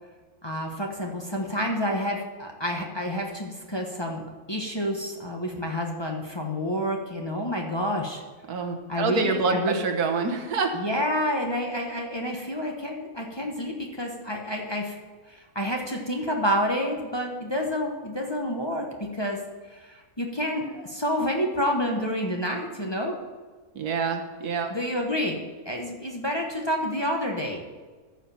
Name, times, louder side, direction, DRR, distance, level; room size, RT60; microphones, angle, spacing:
voice 1, 0.4-8.2 8.9-9.8 10.7-14.9 15.3-19.4 19.7-23.2 24.7-27.6, equal, 20° left, 0 dB, 1.0 m, -29 dB
voice 2, 8.5-10.7 23.7-24.7, right 4 dB, 90° right, 5 dB, 1.6 m, -26 dB
14.0 x 5.0 x 5.7 m, 1.4 s
omnidirectional pair, 1.6 m